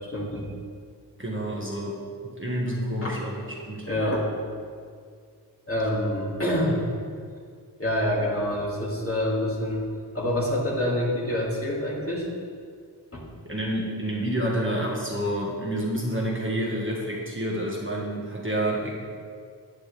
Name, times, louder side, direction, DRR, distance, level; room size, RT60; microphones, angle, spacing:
voice 1, 0.1-0.5 3.0-3.2 3.9-4.3 5.7-6.8 7.8-9.8 10.1-12.3 13.1-13.2, left 1 dB, 30° left, -6 dB, 2.5 m, -26 dB
voice 2, 1.2-2.0 2.2-3.9 13.4-18.9, right 1 dB, 30° right, -4 dB, 1.6 m, -28 dB
10.0 x 9.7 x 3.5 m, 2.1 s
wide cardioid pair, 55°, 43 cm